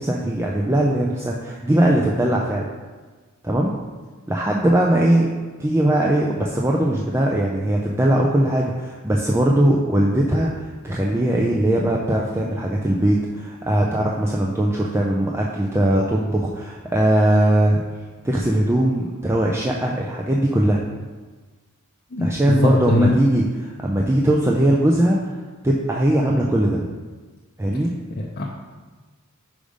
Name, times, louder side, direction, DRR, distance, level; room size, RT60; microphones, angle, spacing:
voice 1, 0.0-2.7 3.4-3.7 4.3-5.3 5.6-17.8 18.2-20.8 22.2-25.3 25.6-26.8 27.6-27.9, right 1 dB, 10° right, -2 dB, 0.4 m, -20 dB
voice 2, 22.1-23.1 28.2-28.5, left 1 dB, 40° left, -3 dB, 0.6 m, -21 dB
5.1 x 5.1 x 5.0 m, 1.3 s
head